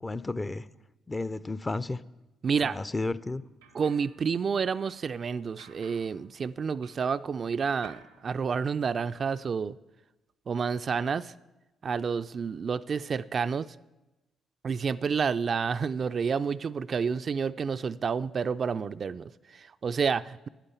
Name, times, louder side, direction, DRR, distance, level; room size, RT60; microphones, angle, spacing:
voice 1, 0.0-0.7 1.1-2.0 2.6-3.4, left 2 dB, 25° left, 0.5 m, -32 dB
voice 2, 2.4-2.8 3.7-9.8 10.5-11.3 11.8-13.7 14.6-20.5, right 6 dB, 50° right, 0.3 m, -29 dB
sound 1, 3.2-7.3 7.6-9.1, right 7 dB, 85° right, 0.7 m, -56 dB
9.7 x 9.0 x 7.0 m
hypercardioid pair, 45°, 0 cm